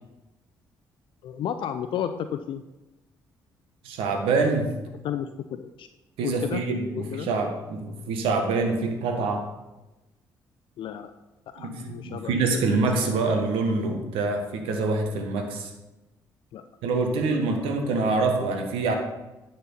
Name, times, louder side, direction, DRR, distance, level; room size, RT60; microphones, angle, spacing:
voice 1, 1.2-2.6 5.0-5.9 6.2-6.6 6.9-7.3 10.8-11.1 11.5-12.7 16.5-16.6 17.2-18.1, left 9 dB, 60° left, 9 dB, 0.5 m, -33 dB
voice 2, 3.8-4.7 6.2-9.5 11.6-15.7 16.8-18.9, right 3 dB, 70° right, 4 dB, 1.3 m, -25 dB
10.0 x 4.4 x 5.5 m, 1.0 s
hypercardioid pair, 45°, 10 cm